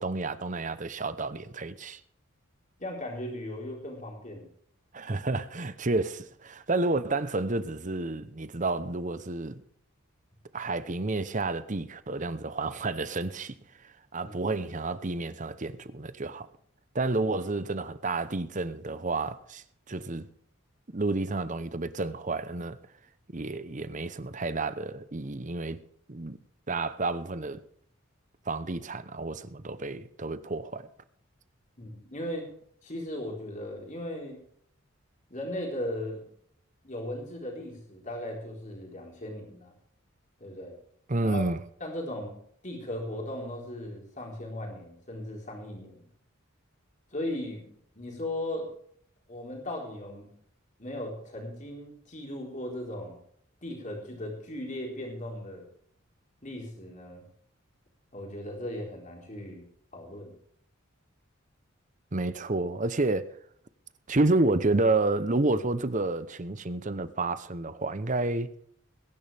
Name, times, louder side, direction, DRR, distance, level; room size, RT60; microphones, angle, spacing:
voice 1, 0.0-2.0 4.9-9.6 10.5-16.5 16.9-20.3 20.9-22.8 23.3-25.8 26.1-26.4 26.7-27.6 28.5-30.9 41.1-41.6 62.1-63.3 64.1-68.5, right 2 dB, 35° right, 0.9 m, -30 dB
voice 2, 2.8-4.5 14.2-14.4 31.8-32.5 32.8-34.4 35.3-36.2 36.8-39.7 40.4-40.8 41.2-41.4 41.8-42.4 42.6-46.1 47.1-48.7 49.3-50.3 50.8-53.2 53.6-55.7 56.4-57.2 58.1-60.3, left 1 dB, 35° left, 4.3 m, -37 dB
21.5 x 11.0 x 3.5 m
head